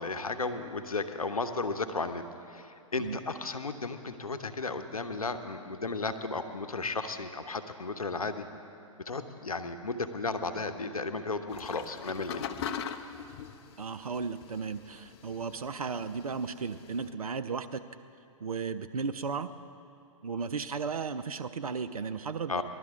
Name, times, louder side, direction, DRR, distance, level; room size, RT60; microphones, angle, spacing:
voice 1, 0.0-8.5 9.1-12.4 22.5-22.6, left 3 dB, 90° left, 9 dB, 0.8 m, -34 dB
sound 1, 11.5-17.1, left 8 dB, 50° left, 0.7 m, -42 dB
voice 2, 13.8-17.8 18.4-19.5 20.2-22.6, right 5 dB, 85° right, 10 dB, 0.5 m, -35 dB
19.5 x 12.0 x 3.6 m, 2.5 s
figure-of-eight pair, 115°, 18 cm